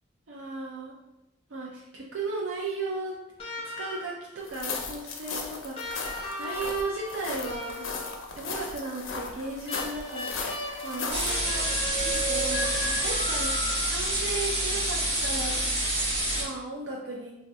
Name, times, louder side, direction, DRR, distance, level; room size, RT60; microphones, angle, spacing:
voice 1, 0.3-0.9 1.5-3.2 3.8-6.1 6.4-8.0 8.3-11.7 12.0-15.9 16.4-17.3, right 3 dB, 75° right, -3 dB, 0.5 m, -36 dB
sound 1, 3.4-4.3 5.7-8.3 9.7-14.1 15.5-15.6, left 1 dB, 30° left, 0.8 m, -36 dB
sound 2, 4.5-11.4, left 4 dB, 90° left, 0.5 m, -36 dB
sound 3, 11.1-16.4, right 1 dB, 30° right, 0.9 m, -28 dB
2.5 x 2.3 x 4.1 m, 0.91 s
head